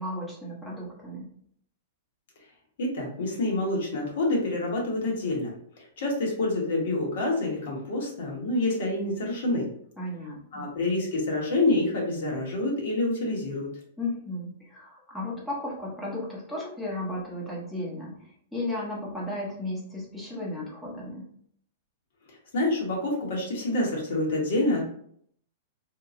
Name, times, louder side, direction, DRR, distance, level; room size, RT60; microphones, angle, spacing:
voice 1, 0.0-1.3 10.0-10.7 14.0-21.4, left 1 dB, 5° left, -5 dB, 0.8 m, -35 dB
voice 2, 2.8-9.7 10.5-13.7 22.5-24.9, left 2 dB, 70° left, -1 dB, 1.2 m, -27 dB
2.8 x 2.2 x 2.6 m, 0.65 s
hypercardioid pair, 150°, 0 cm